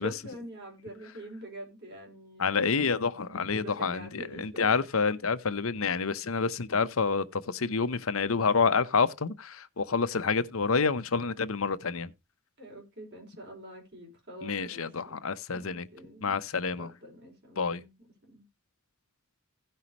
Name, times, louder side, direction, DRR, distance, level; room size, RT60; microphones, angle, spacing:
voice 1, 0.0-2.8 3.3-4.8 6.7-6.9 12.6-15.2 15.5-16.3 16.8-17.9 18.2-18.5, equal, 55° right, 5.4 m, -45 dB
voice 2, 2.4-12.1 14.4-15.9 16.2-16.9 17.6-17.8, left 5 dB, 70° left, 0.8 m, -28 dB
16.5 x 5.6 x 3.0 m
head